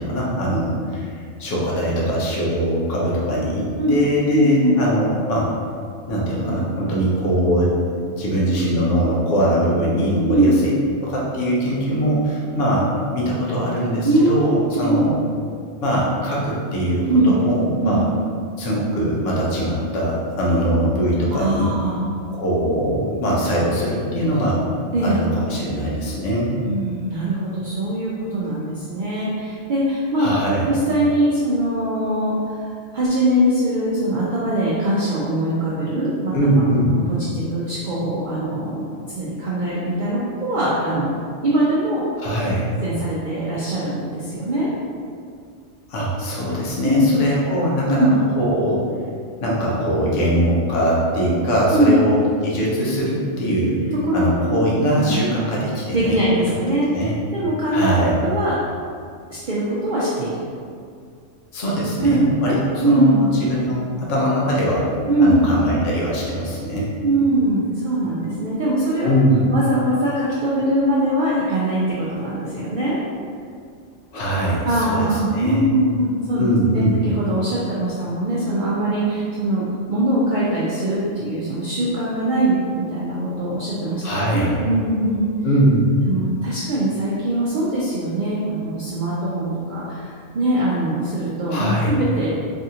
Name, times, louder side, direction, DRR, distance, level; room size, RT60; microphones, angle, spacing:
voice 1, 0.0-5.5 6.1-10.7 11.0-12.9 13.1-15.1 15.8-18.0 18.6-21.7 22.3-24.6 25.0-26.5 30.2-30.6 36.3-36.9 42.2-42.7 45.9-48.1 48.4-48.8 49.4-56.2 56.9-57.1 57.7-58.1 61.5-64.9 65.2-66.9 69.0-69.5 74.1-75.7 76.3-77.0 84.0-84.6 85.4-86.0 91.5-92.0, equal, 70° left, -5 dB, 1.0 m, -21 dB
voice 2, 4.3-4.8 10.2-10.5 14.0-15.0 17.1-17.3 17.8-18.0 21.4-22.0 24.9-25.2 26.6-30.3 30.7-32.6 32.9-36.3 37.1-41.2 41.4-42.0 42.8-44.7 46.8-47.1 47.8-48.1 51.7-52.0 54.1-54.6 54.9-55.2 55.9-57.0 57.3-57.9 58.2-58.5 59.3-60.4 61.6-61.7 62.0-62.2 62.8-63.3 65.1-65.4 67.0-69.2 69.5-73.0 74.6-76.5 76.7-79.6 79.9-85.3 86.0-92.3, right 1 dB, 65° right, -7 dB, 0.4 m, -21 dB
3.4 x 2.4 x 2.7 m, 2.2 s
omnidirectional pair, 1.3 m